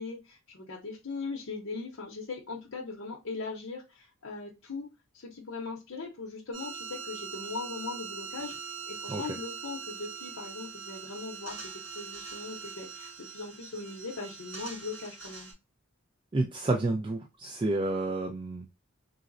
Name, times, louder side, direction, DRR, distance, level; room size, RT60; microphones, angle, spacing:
voice 1, 0.0-4.9 5.1-15.5, left 3 dB, 70° left, -1 dB, 0.7 m, -40 dB
sound 1, 6.5-15.5, right 5 dB, 60° right, 1.7 m, -42 dB
voice 2, 16.3-18.7, right 2 dB, 25° right, 1 dB, 0.4 m, -30 dB
3.8 x 2.0 x 2.5 m, 0.25 s
head